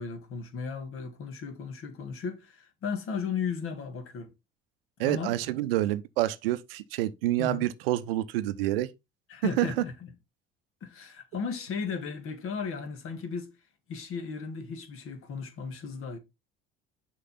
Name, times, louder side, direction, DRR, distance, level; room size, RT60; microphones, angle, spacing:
voice 1, 0.0-4.3 5.0-5.3 7.4-7.7 9.3-9.9 10.8-13.5 13.9-16.2, left 5 dB, 45° left, 1.8 m, -35 dB
voice 2, 5.0-8.9 9.6-9.7, right 15 dB, 70° right, 0.7 m, -28 dB
6.6 x 5.4 x 3.9 m
hypercardioid pair, 65°, 30 cm